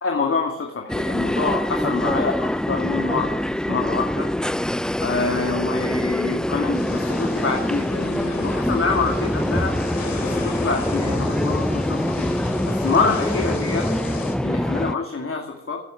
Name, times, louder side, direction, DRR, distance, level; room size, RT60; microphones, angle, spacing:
voice 1, 0.0-3.4 3.7-4.3 5.0-9.8 10.2-12.3 12.7-13.9 14.4-15.8, left 4 dB, 35° left, 2 dB, 2.4 m, -26 dB
sound 1, 0.9-14.9, left 1 dB, ahead, 0.4 m, -24 dB
sound 2, 6.7-14.3, left 4 dB, 70° left, 3.2 m, -34 dB
11.0 x 10.0 x 9.0 m, 0.84 s
hypercardioid pair, 45°, 36 cm